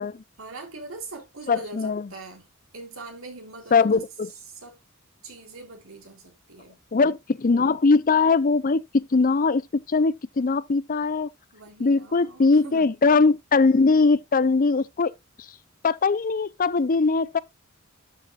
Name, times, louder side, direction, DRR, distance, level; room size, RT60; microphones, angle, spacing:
voice 1, 0.4-2.5 2.7-4.0 4.5-4.8 5.2-6.8 11.5-12.9, right 3 dB, 75° right, 3.1 m, -42 dB
voice 2, 1.5-2.1 3.7-4.3 6.9-11.3 11.8-15.1 15.8-17.4, left 4 dB, 40° left, 0.5 m, -21 dB
12.5 x 6.3 x 2.4 m
head